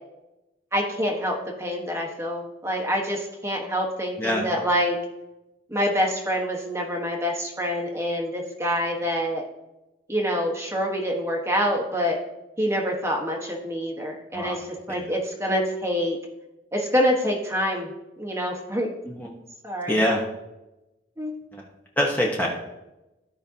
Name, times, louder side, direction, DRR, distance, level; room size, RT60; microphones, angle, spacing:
voice 1, 0.7-5.0 5.7-9.4 10.1-12.2 12.6-16.2 16.7-17.9 18.2-18.9 19.6-20.0 21.2-21.4, equal, 15° right, 0 dB, 1.2 m, -26 dB
voice 2, 19.9-20.2 22.0-22.5, equal, 10° left, -3 dB, 1.0 m, -24 dB
15.0 x 5.3 x 2.8 m, 0.99 s
head